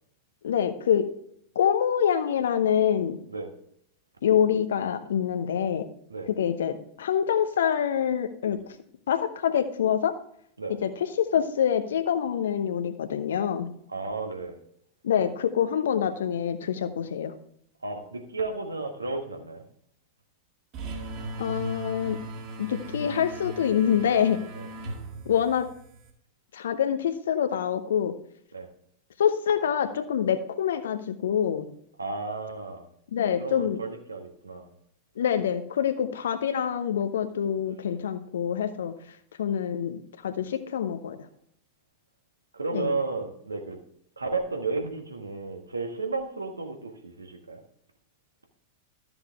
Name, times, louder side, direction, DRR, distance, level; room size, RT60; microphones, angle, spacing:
voice 1, 0.4-1.1 1.5-3.2 4.2-5.9 6.3-8.6 9.1-10.2 10.8-10.9 11.2-13.7 15.0-17.3 21.4-22.2 22.6-24.4 25.3-25.7 26.5-28.1 29.2-31.7 33.1-33.8 35.2-39.0 39.4-41.2 42.7-42.9, left 8 dB, 65° left, 10 dB, 0.9 m, -26 dB
voice 2, 13.9-14.6 17.8-19.7 24.5-24.7 28.5-28.7 32.0-32.9 33.4-34.7 42.5-43.8 44.2-47.6, right 3 dB, 80° right, 4 dB, 1.5 m, -33 dB
sound 1, 20.7-26.1, right 2 dB, 40° right, 2.0 m, -38 dB
13.0 x 7.1 x 3.5 m, 0.69 s
figure-of-eight pair, 90°, 0 cm